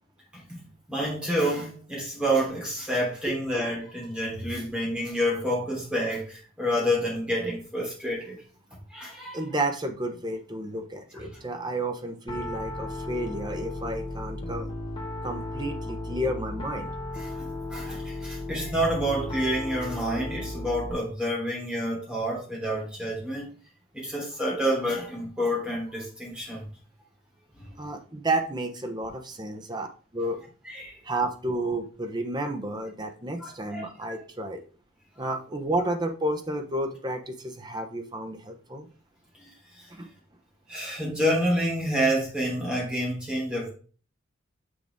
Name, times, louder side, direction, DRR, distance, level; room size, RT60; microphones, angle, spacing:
voice 1, 0.9-8.4 8.9-9.4 17.2-23.5 23.9-26.7 27.6-27.7 30.6-31.0 33.4-33.8 39.4-39.5 39.8-39.9 40.7-43.7, equal, 5° right, 3.3 m, -28 dB
voice 2, 9.3-14.7 15.2-16.9 27.8-29.9 30.1-30.4 31.0-34.6 35.2-38.9 39.9-40.1, right 1 dB, 20° right, 0.9 m, -31 dB
Piano, 12.3-20.9, left 1 dB, 25° left, 1.6 m, -35 dB
6.8 x 6.2 x 3.5 m
head